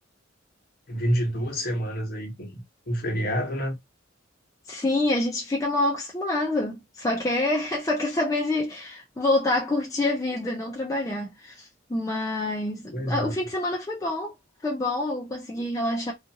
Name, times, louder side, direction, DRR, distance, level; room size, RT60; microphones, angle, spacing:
voice 1, 0.9-3.8 12.9-13.4, equal, 50° left, 0.9 m, -28 dB
voice 2, 4.7-14.3 14.6-16.1, left 2 dB, 15° left, 0.4 m, -27 dB
2.5 x 2.3 x 2.7 m
head